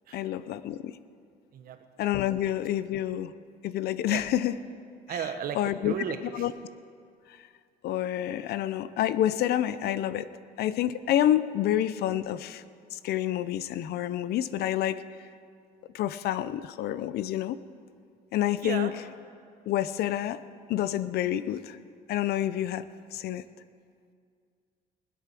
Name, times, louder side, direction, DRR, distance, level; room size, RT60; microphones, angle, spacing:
voice 1, 0.1-1.0 2.0-3.3 3.6-4.5 5.5-5.9 6.3-6.5 7.3-7.4 7.8-10.3 10.6-12.6 12.9-15.0 15.9-17.6 18.3-18.9 19.7-20.4 20.7-21.8 22.1-22.9 23.1-23.4, left 12 dB, 70° left, 15 dB, 0.6 m, -28 dB
voice 2, 5.1-6.5 18.6-18.9, right 8 dB, 60° right, 8 dB, 1.3 m, -34 dB
20.5 x 8.4 x 6.1 m, 2.2 s
cardioid pair, 110°, 17 cm